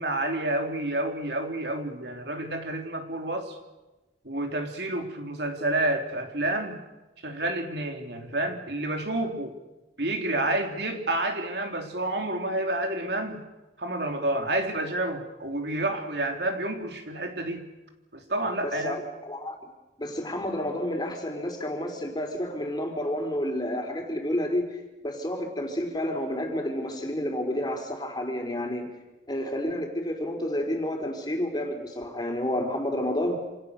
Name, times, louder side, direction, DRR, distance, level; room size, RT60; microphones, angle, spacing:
voice 1, 0.0-3.6 4.2-6.8 7.2-9.6 10.0-13.5 13.8-17.7 18.1-19.0, right 1 dB, 65° right, 4 dB, 3.1 m, -29 dB
voice 2, 18.6-19.7 20.0-24.7 25.0-28.9 29.3-33.4, left 1 dB, 25° left, 3 dB, 4.0 m, -30 dB
27.5 x 27.0 x 6.7 m, 1.1 s
head